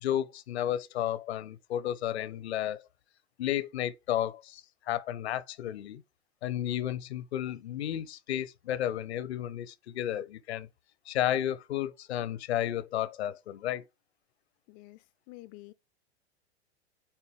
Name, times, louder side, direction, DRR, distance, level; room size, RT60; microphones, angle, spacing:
voice 1, 0.0-2.8 3.4-6.0 6.4-10.7 11.1-13.8, left 11 dB, 70° left, 0.8 m, -32 dB
voice 2, 14.7-15.7, left 19 dB, 35° left, 0.4 m, -50 dB
9.0 x 4.0 x 3.6 m
hypercardioid pair, 105°, 33 cm